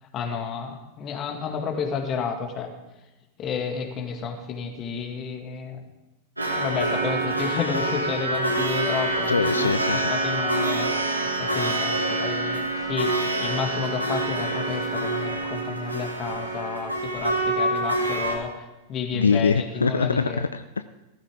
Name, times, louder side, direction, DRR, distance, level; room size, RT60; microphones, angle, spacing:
voice 1, 0.1-2.7 3.4-5.8 6.6-9.7 10.1-10.9 11.4-13.1 13.4-18.6 18.9-20.4, left 6 dB, 30° left, 5 dB, 2.0 m, -31 dB
sound 1, 6.4-18.4, right 2 dB, 85° right, 2.2 m, -26 dB
voice 2, 9.3-10.1 19.1-20.8, left 5 dB, 75° left, 12 dB, 0.4 m, -23 dB
16.0 x 14.0 x 3.6 m, 1.0 s
figure-of-eight pair, 90°, 0 cm